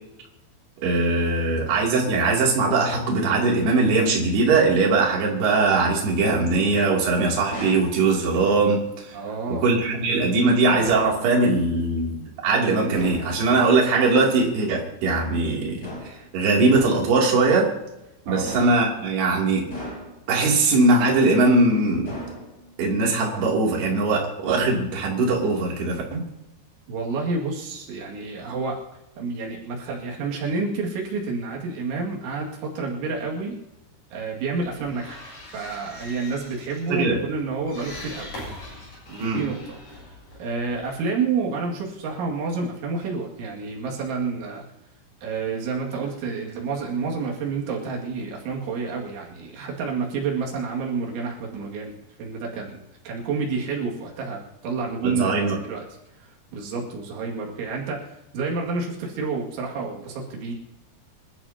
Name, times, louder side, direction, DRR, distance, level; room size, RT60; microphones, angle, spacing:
voice 1, 0.8-9.2 9.5-17.7 18.3-19.7 20.3-22.1 22.8-26.3 36.9-37.2 39.2-39.4 55.0-55.6, right 3 dB, 65° right, -2 dB, 4.8 m, -21 dB
sound 1, 7.5-7.9 10.8-11.2 12.9-13.3 15.8-16.2 16.7-17.1 18.4-18.9 19.7-20.3 22.0-22.7, left 1 dB, 20° left, 6.4 m, -36 dB
voice 2, 9.1-9.7 18.3-18.5 26.9-28.8 29.2-33.6 34.1-35.2 35.5-38.3 39.1-39.8 40.4-44.6 45.2-52.8 53.0-55.8 56.2-58.0 58.3-60.5, right 4 dB, 85° right, -2 dB, 4.6 m, -29 dB
sound 2, 34.5-41.0, left 1 dB, 40° left, 8.1 m, -42 dB
26.5 x 13.0 x 2.9 m, 0.93 s
omnidirectional pair, 5.2 m